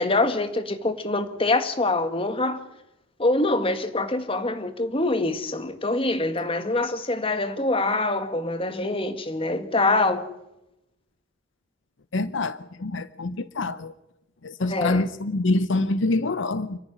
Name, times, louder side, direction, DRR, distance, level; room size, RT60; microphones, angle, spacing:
voice 1, 0.0-2.6 3.2-10.3 14.6-15.1, left 2 dB, 25° left, 1.8 m, -25 dB
voice 2, 12.1-13.9 14.4-16.8, left 2 dB, 70° left, 0.7 m, -26 dB
29.0 x 11.0 x 9.9 m
head